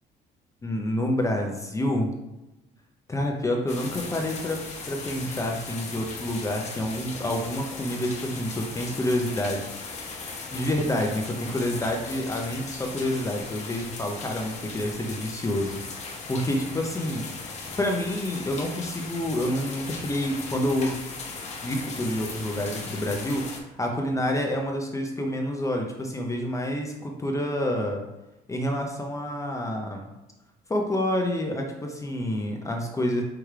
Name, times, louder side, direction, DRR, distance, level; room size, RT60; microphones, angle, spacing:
voice 1, 0.6-2.1 3.1-4.6 4.9-9.7 10.5-15.8 16.3-17.3 17.8-21.0 21.6-23.4 23.8-28.0 28.5-30.1 30.7-33.2, left 1 dB, 20° left, 2 dB, 0.6 m, -28 dB
sound 1, 3.7-23.6, left 4 dB, 40° left, 0.9 m, -38 dB
4.8 x 3.4 x 3.2 m, 0.94 s
cardioid pair, 110°, 17 cm